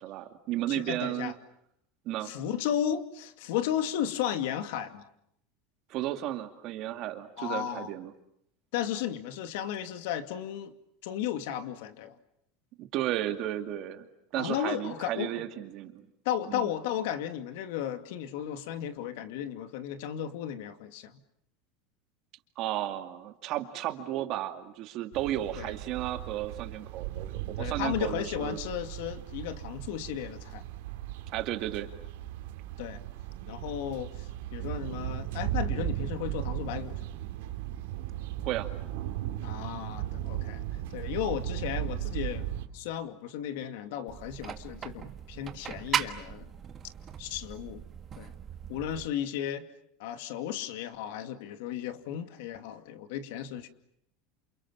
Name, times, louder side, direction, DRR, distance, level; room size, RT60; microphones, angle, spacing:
voice 1, 0.0-1.3 2.1-2.3 5.9-8.1 12.8-14.1 14.3-16.0 16.5-16.7 22.6-28.6 31.3-31.9 38.4-38.7, right 13 dB, 40° right, 8 dB, 2.3 m, -33 dB
voice 2, 0.7-1.3 2.2-5.0 7.4-7.9 8.7-10.7 11.0-12.2 14.4-15.3 16.2-21.1 25.6-25.7 27.6-30.6 32.8-33.0 33.5-37.0 39.4-40.6 40.9-42.5 42.7-46.5 47.2-47.8 48.2-48.3 48.7-49.7 50.0-53.7, left 10 dB, 65° left, 10 dB, 2.3 m, -34 dB
sound 1, 25.1-42.7, right 12 dB, 75° right, 3.3 m, -36 dB
sound 2, 44.1-49.1, right 8 dB, 25° right, 1.5 m, -38 dB
28.5 x 28.0 x 7.4 m, 0.74 s
supercardioid pair, 165°, 0 cm